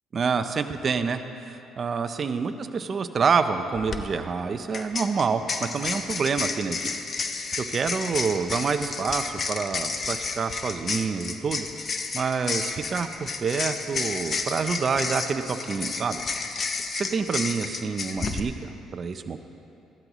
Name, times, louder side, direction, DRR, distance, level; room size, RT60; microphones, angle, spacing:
voice 1, 0.1-6.8 7.6-11.7 12.1-16.2 16.9-19.4, right 5 dB, 40° right, 9 dB, 0.6 m, -27 dB
sound 1, 3.7-4.0 4.7-18.4, left 4 dB, 40° left, 0.7 m, -31 dB
14.5 x 12.0 x 3.1 m, 2.7 s
cardioid pair, 105°, 0 cm